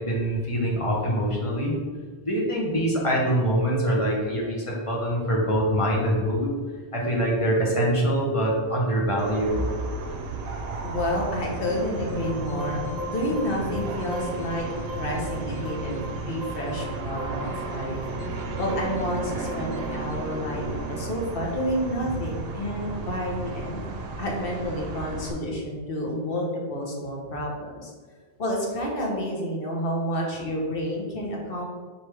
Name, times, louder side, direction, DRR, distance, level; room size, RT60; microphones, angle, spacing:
voice 1, 0.0-1.7 2.2-6.6 6.9-9.6, right 1 dB, 35° left, -2 dB, 0.8 m, -24 dB
sound 1, 9.2-25.3, right 3 dB, 70° right, 0.8 m, -34 dB
voice 2, 10.8-14.6 14.9-18.0 18.6-23.8 24.2-27.9 28.4-31.6, equal, 65° left, -2 dB, 1.1 m, -30 dB
sound 2, 12.0-22.2, equal, 40° right, 1.1 m, -37 dB
4.5 x 3.3 x 3.3 m, 1.5 s
omnidirectional pair, 1.1 m